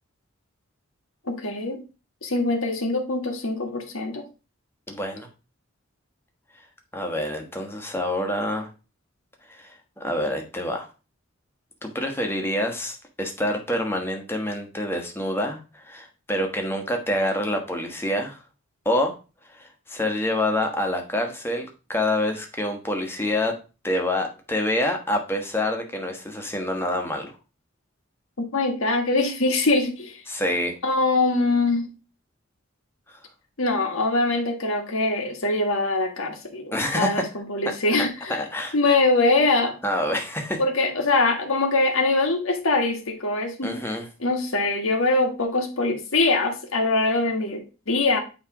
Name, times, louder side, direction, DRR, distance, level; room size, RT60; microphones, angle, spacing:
voice 1, 1.3-1.8 2.2-4.2 28.4-30.2 30.8-31.9 33.6-38.4 38.7-39.8 40.6-43.7 44.2-48.2, left 2 dB, 80° left, 1.5 m, -23 dB
voice 2, 4.9-5.3 6.9-8.7 9.5-9.7 10.0-10.9 11.8-18.4 18.8-19.2 19.5-23.5 23.8-27.3 30.3-30.7 33.1-33.2 36.7-37.2 37.6-38.9 39.8-40.6 43.6-44.1, left 1 dB, 10° left, 1.2 m, -27 dB
8.8 x 3.3 x 4.8 m
head